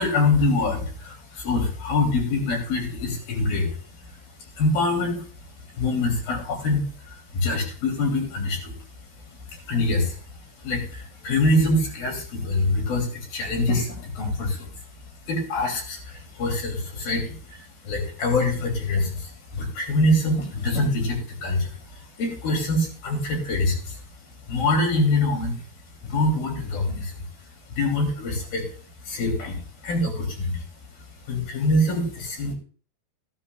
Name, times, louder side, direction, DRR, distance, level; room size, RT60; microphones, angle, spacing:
voice 1, 0.0-5.2 5.6-8.7 9.5-14.7 15.3-24.0 24.5-25.6 26.0-27.2 27.7-28.7 29.0-30.6 31.3-32.5, left 2 dB, 65° left, 1 dB, 4.6 m, -25 dB
14.5 x 13.5 x 2.3 m, 0.40 s
omnidirectional pair, 4.6 m